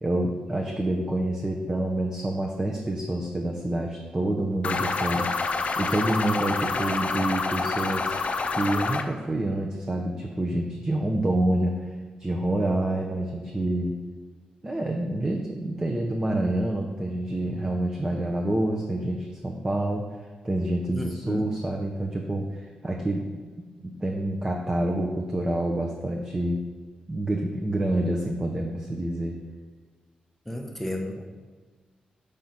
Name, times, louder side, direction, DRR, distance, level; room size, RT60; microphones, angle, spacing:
voice 1, 0.0-5.3 5.8-8.1 8.5-11.9 12.2-14.0 14.6-20.0 20.4-23.3 24.0-26.6 27.1-29.3, right 1 dB, 25° right, 0 dB, 0.7 m, -27 dB
sound 1, 4.6-9.0, left 4 dB, 55° left, 0.5 m, -27 dB
voice 2, 20.9-21.5 30.5-31.2, left 1 dB, 5° left, 2 dB, 0.9 m, -32 dB
5.1 x 4.0 x 5.9 m, 1.4 s
cardioid pair, 80°, 3 cm